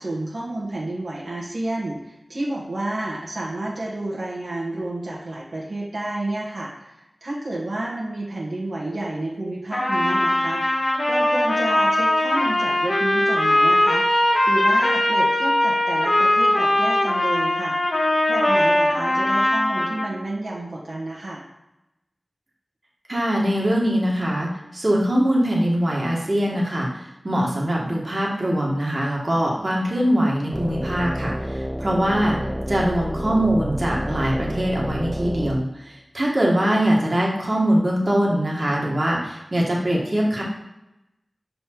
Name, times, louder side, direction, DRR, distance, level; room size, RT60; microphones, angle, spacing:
voice 1, 0.0-14.1 14.5-17.8 18.3-21.4 36.6-36.8, right 1 dB, 85° right, -5 dB, 1.4 m, -30 dB
Trumpet, 9.7-20.1, left 1 dB, 80° left, 1.4 m, -20 dB
voice 2, 23.1-32.4 32.7-40.4, equal, 50° right, -3 dB, 1.6 m, -22 dB
sound 1, 30.5-35.6, equal, 5° right, 0.4 m, -29 dB
5.4 x 4.2 x 4.6 m, 0.91 s
wide cardioid pair, 45°, 0 cm